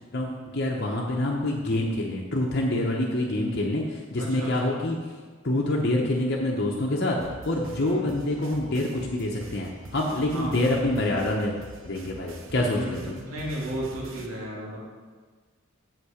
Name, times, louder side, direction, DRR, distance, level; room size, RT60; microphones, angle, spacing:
voice 1, 0.1-5.2 5.4-7.2 7.4-11.5 11.8-13.2, left 1 dB, 50° left, -2 dB, 0.9 m, -26 dB
voice 2, 4.2-4.8 7.8-8.2 10.3-10.6 12.8-14.8, right 1 dB, 90° right, -3 dB, 2.2 m, -35 dB
sound 1, 7.2-14.3, right 2 dB, 65° right, 1.0 m, -45 dB
8.4 x 7.5 x 5.0 m, 1.5 s
head